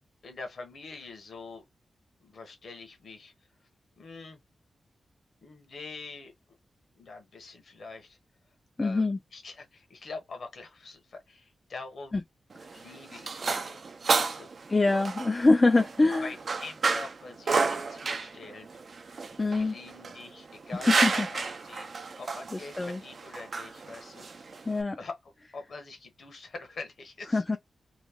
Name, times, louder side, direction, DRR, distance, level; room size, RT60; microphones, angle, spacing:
voice 1, 0.2-1.6 2.2-3.3 4.0-4.4 5.4-6.3 6.9-8.2 8.8-12.2 12.7-13.8 14.1-14.5 16.2-18.7 19.5-21.9 22.2-24.7 25.0-27.6, left 3 dB, 70° left, 1.2 m, -44 dB
voice 2, 8.8-9.2 12.1-12.2 14.7-16.3 19.4-19.8 20.9-21.3 22.5-23.0 24.7-25.0 27.3-27.6, left 3 dB, 30° left, 0.4 m, -24 dB
sound 1, 12.5-24.8, right 4 dB, 60° right, 0.5 m, -31 dB
3.1 x 2.3 x 3.5 m
cardioid pair, 65°, 0 cm